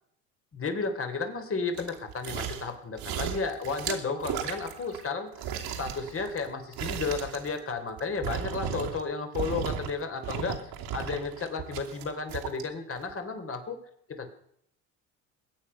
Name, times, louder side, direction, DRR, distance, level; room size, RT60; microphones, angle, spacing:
voice 1, 0.5-5.5 5.8-10.6 10.9-13.8 14.1-14.3, left 4 dB, 30° left, 6 dB, 3.4 m, -33 dB
sound 1, 1.8-2.7 3.0-5.1 5.4-9.1 9.3-9.9 10.2-12.6 13.1-13.2, right 8 dB, 65° right, 2.8 m, -35 dB
22.5 x 9.1 x 5.7 m, 0.70 s
hypercardioid pair, 80°, 41 cm